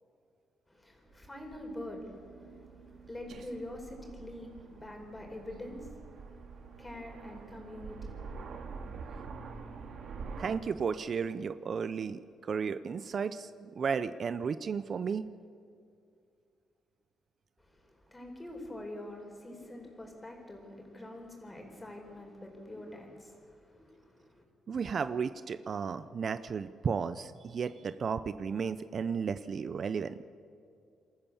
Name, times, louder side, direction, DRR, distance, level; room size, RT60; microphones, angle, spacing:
voice 1, 0.7-8.7 17.6-24.4, left 1 dB, 15° left, 2 dB, 5.1 m, -46 dB
Aircraft, 1.1-10.6, right 5 dB, 65° right, 2.1 m, -46 dB
voice 2, 10.4-15.2 24.7-30.2, right 6 dB, 50° right, 13 dB, 0.6 m, -34 dB
27.5 x 13.5 x 7.2 m, 2.4 s
cardioid pair, 90°, 0 cm